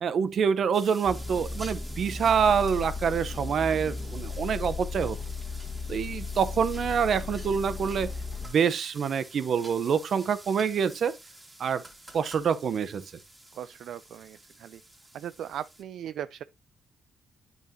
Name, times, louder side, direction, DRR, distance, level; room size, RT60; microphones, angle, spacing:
voice 1, 0.0-5.2 5.9-8.1 8.4-11.1 11.6-11.8 12.1-13.0, right 7 dB, 55° right, 0.7 m, -26 dB
sound 1, 0.7-15.8, right 1 dB, 15° right, 2.4 m, -49 dB
sound 2, 1.0-8.5, left 4 dB, 25° left, 1.4 m, -36 dB
voice 2, 13.5-14.8 15.1-16.4, right 10 dB, 75° right, 0.3 m, -38 dB
9.1 x 6.1 x 2.7 m
cardioid pair, 90°, 0 cm